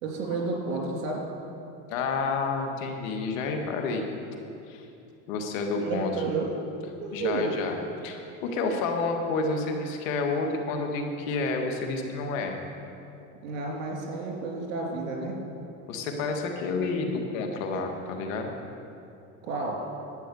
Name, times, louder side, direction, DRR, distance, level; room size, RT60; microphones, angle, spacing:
voice 1, 0.0-1.2 5.8-6.5 7.0-7.5 13.4-15.4 19.4-19.8, right 3 dB, 85° right, -1 dB, 3.3 m, -31 dB
voice 2, 1.9-4.1 4.7-4.9 5.3-6.1 7.1-7.8 8.0-12.6 15.9-18.5, left 3 dB, 80° left, 3 dB, 1.9 m, -29 dB
11.5 x 9.1 x 7.1 m, 2.7 s
supercardioid pair, 100°, 39 cm